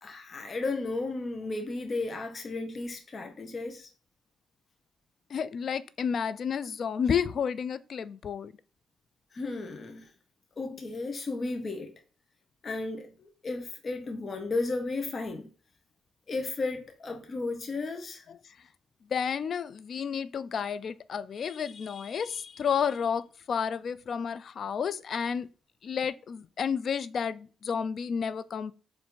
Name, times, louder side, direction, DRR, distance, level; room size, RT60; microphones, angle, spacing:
voice 1, 0.0-3.9 9.3-10.1 10.6-11.9 12.6-15.5 16.3-18.2, left 3 dB, 40° left, 0.8 m, -34 dB
voice 2, 5.3-8.5 18.3-18.4 19.1-25.5 25.8-28.7, left 7 dB, 55° left, 0.4 m, -31 dB
4.6 x 2.6 x 3.7 m
cardioid pair, 90°, 0 cm